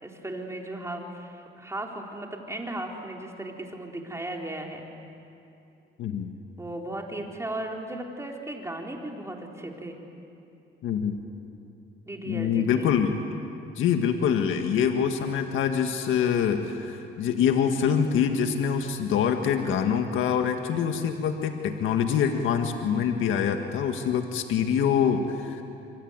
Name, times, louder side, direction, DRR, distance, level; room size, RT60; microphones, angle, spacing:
voice 1, 0.0-4.9 6.6-10.0 12.1-12.9, right 1 dB, 15° right, 1 dB, 4.1 m, -36 dB
voice 2, 6.0-6.3 10.8-11.2 12.3-13.2 13.8-25.6, left 7 dB, 85° left, 5 dB, 1.7 m, -25 dB
25.5 x 25.0 x 9.5 m, 2.7 s
cardioid pair, 90°, 20 cm